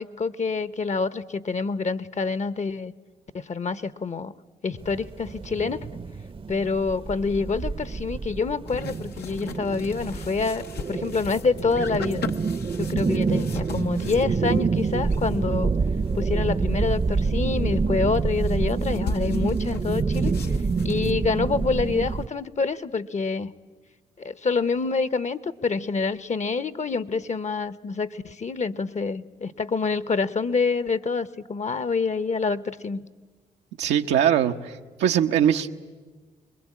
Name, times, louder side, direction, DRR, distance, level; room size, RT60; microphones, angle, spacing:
voice 1, 0.0-2.9 3.3-4.3 4.6-5.8 6.5-12.2 12.8-15.7 16.1-20.3 20.8-23.5 24.2-33.1, left 4 dB, 45° left, 16 dB, 1.1 m, -27 dB
sound 1, 4.8-22.3, right 4 dB, 30° right, 0.8 m, -27 dB
sound 2, 8.7-17.2 17.6-17.7 17.9-21.1, left 5 dB, 70° left, 1.0 m, -39 dB
voice 2, 33.8-34.7 35.0-35.7, right 9 dB, 85° right, 5 dB, 0.9 m, -21 dB
24.5 x 21.5 x 8.6 m, 1.3 s
supercardioid pair, 50°, 17 cm